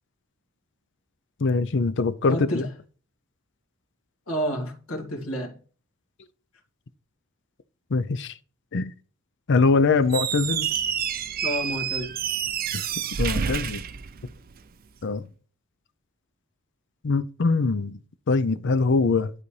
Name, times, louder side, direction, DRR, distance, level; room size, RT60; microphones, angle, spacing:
voice 1, 1.4-2.7 7.9-8.3 8.7-8.9 9.5-10.7 12.7-12.8 13.2-13.8 15.0-15.3 17.0-18.0 18.3-19.3, left 4 dB, 60° left, 0.6 m, -23 dB
voice 2, 2.3-2.7 4.3-5.6 11.4-12.2, equal, 85° left, 2.1 m, -30 dB
Squeak, 10.0-14.7, right 8 dB, 45° right, 0.5 m, -29 dB
12.0 x 4.1 x 3.3 m
head